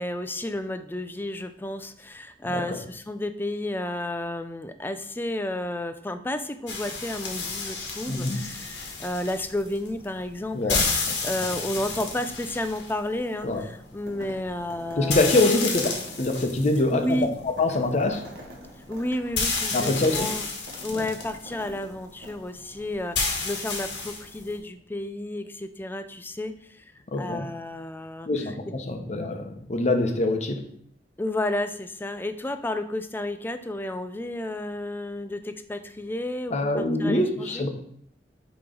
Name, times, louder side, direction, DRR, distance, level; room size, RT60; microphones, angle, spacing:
voice 1, 0.0-15.5 16.9-17.3 18.9-20.5 20.8-26.8 27.2-28.3 31.2-37.6, left 1 dB, 10° left, 10 dB, 0.4 m, -32 dB
voice 2, 2.5-2.8 8.1-8.4 10.5-10.9 13.4-13.6 15.0-15.9 16.2-18.2 19.7-20.3 20.9-21.0 27.1-27.5 28.3-30.6 36.5-37.7, left 2 dB, 40° left, 6 dB, 0.7 m, -24 dB
sound 1, 6.7-24.6, left 4 dB, 80° left, 1.3 m, -32 dB
sound 2, 14.1-14.4 14.7-21.9 22.2-22.3, equal, 65° right, 1.6 m, -45 dB
8.5 x 3.0 x 3.8 m, 0.67 s
head